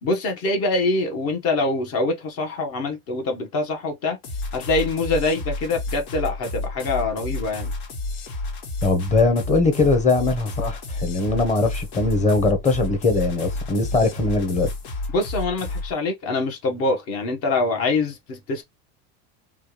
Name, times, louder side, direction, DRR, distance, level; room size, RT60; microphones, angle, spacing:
voice 1, 0.0-4.2 4.5-7.7 15.1-18.6, left 2 dB, 45° left, 1.1 m, -24 dB
sound 1, 4.2-15.9, left 2 dB, 75° left, 1.9 m, -31 dB
voice 2, 8.8-14.7, left 3 dB, 20° left, 1.0 m, -21 dB
3.4 x 2.4 x 3.0 m
supercardioid pair, 135°, 32 cm